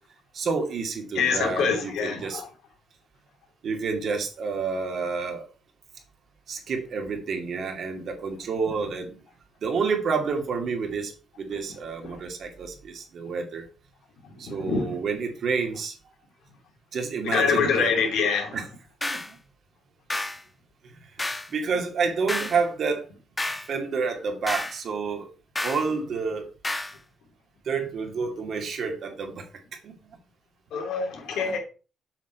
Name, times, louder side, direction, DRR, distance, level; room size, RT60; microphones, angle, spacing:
voice 1, 0.3-2.4 3.6-5.5 6.5-9.1 9.6-11.1 11.4-13.7 14.4-15.9 16.9-18.0 18.5-18.7 19.0-19.4 21.5-23.1 23.7-25.3 25.6-26.5 27.7-29.4 29.8-29.9, right 5 dB, 60° right, 2.5 m, -29 dB
voice 2, 1.1-2.4 14.5-14.9 17.2-18.6 30.7-31.6, left 5 dB, 80° left, 2.9 m, -25 dB
sound 1, 19.0-19.3 20.1-20.4 21.2-21.5 22.3-22.6 23.4-23.7 24.5-24.8 25.6-25.9 26.6-27.0, left 2 dB, 15° left, 1.1 m, -30 dB
7.4 x 6.3 x 4.5 m
cardioid pair, 90°, 0 cm